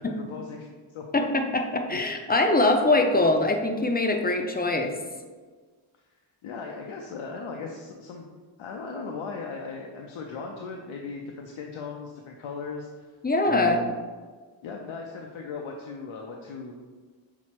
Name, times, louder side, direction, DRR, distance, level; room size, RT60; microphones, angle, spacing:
voice 1, 0.0-1.3 1.9-2.0 6.4-8.3 8.6-12.9 13.5-14.0 14.6-16.7, left 4 dB, 90° left, 1 dB, 0.6 m, -37 dB
voice 2, 1.1-4.9 13.2-13.8, left 2 dB, 20° left, 3 dB, 0.4 m, -23 dB
6.0 x 2.1 x 4.3 m, 1.4 s
wide cardioid pair, 90°, 47 cm